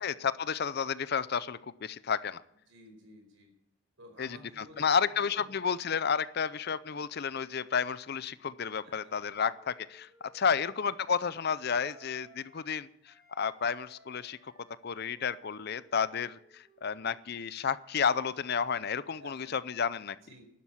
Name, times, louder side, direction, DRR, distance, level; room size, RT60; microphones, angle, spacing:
voice 1, 0.0-2.4 4.2-14.5 14.8-20.2, left 6 dB, 50° left, 16 dB, 0.5 m, -31 dB
voice 2, 2.7-3.5 4.0-5.0 5.4-5.5 8.8-9.1 10.5-10.6 19.2-19.5 20.1-20.4, right 1 dB, 65° right, 3 dB, 4.8 m, -54 dB
Wind instrument woodwind instrument, 9.5-12.8 13.1-17.6, right 3 dB, 20° right, 3.1 m, -63 dB
12.0 x 9.9 x 8.7 m, 0.74 s
head